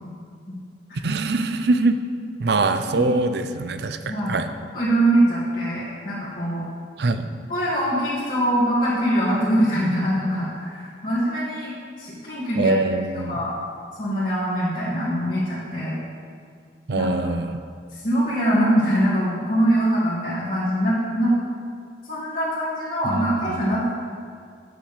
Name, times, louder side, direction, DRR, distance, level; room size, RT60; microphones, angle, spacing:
voice 1, 1.0-2.0 2.4-4.0 4.3-4.5 7.0-7.3 12.6-13.3 16.9-17.6 23.0-23.6, right 3 dB, 70° right, 9 dB, 0.5 m, -23 dB
voice 2, 4.1-4.4 4.7-6.6 7.5-12.7 13.1-13.5 14.0-15.9 16.9-17.1 17.9-21.3 22.1-23.9, right 1 dB, 55° left, -13 dB, 2.3 m, -23 dB
8.7 x 7.9 x 3.3 m, 2.2 s
head